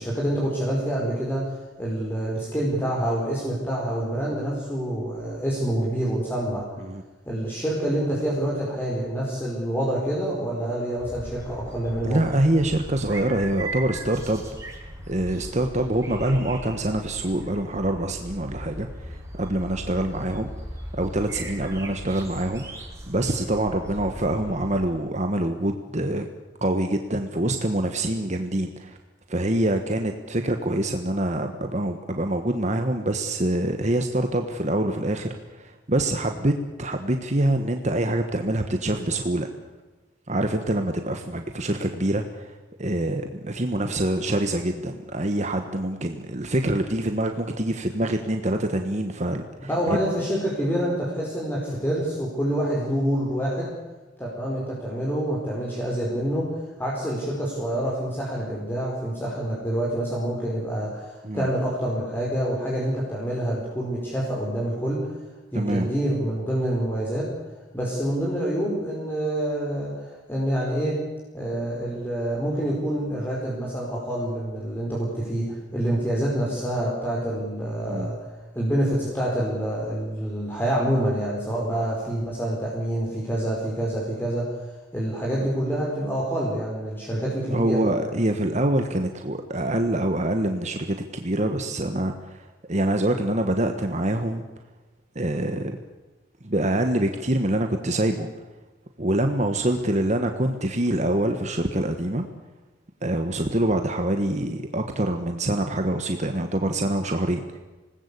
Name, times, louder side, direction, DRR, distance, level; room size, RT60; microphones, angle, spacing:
voice 1, 0.0-6.6 7.2-12.2 49.7-53.7 54.2-65.1 65.5-67.3 67.7-71.0 71.3-78.3 78.5-84.6 84.9-87.8, right 1 dB, 10° left, -4 dB, 5.0 m, -27 dB
sound 1, 11.0-24.9, right 1 dB, 15° right, 6.4 m, -38 dB
voice 2, 12.0-14.4 15.1-20.5 20.9-22.6 23.1-26.3 26.6-29.0 29.3-36.5 36.8-39.5 40.3-42.5 42.8-50.0 61.2-61.5 65.5-65.9 77.9-78.1 87.5-94.4 95.1-95.7 96.4-98.3 99.0-102.2 103.0-107.6, right 1 dB, 40° right, 6 dB, 1.4 m, -25 dB
26.5 x 19.5 x 8.5 m, 1.2 s
head